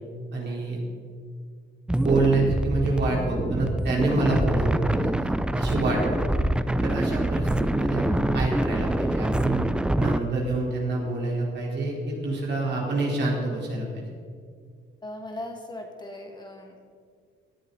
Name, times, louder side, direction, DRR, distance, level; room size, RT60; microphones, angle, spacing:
voice 1, 0.3-0.8 2.0-6.4 6.8-9.6 9.9-14.0, right 2 dB, 60° right, -3 dB, 3.9 m, -27 dB
sound 1, 1.9-10.2, right 1 dB, 5° right, 0.5 m, -25 dB
voice 2, 15.0-16.8, left 1 dB, 20° left, 2 dB, 1.9 m, -39 dB
17.5 x 9.6 x 4.0 m, 2.1 s
cardioid pair, 90°, 20 cm